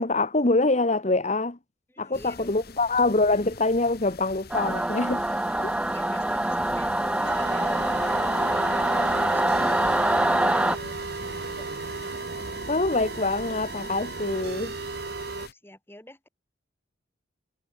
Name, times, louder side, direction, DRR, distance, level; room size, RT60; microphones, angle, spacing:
voice 1, 0.0-1.6 2.0-5.2 5.6-5.7 12.7-14.8, left 2 dB, 35° left, 1.2 m, -24 dB
voice 2, 1.9-2.7 5.9-8.7 9.0-11.7 15.3-16.3, left 1 dB, 10° left, 4.7 m, -48 dB
sound 1, 2.1-15.5, left 3 dB, 50° left, 1.9 m, -45 dB
Singing / Musical instrument, 4.5-10.8, right 1 dB, 5° right, 0.4 m, -24 dB
sound 2, 7.2-15.5, right 4 dB, 55° right, 1.0 m, -35 dB
head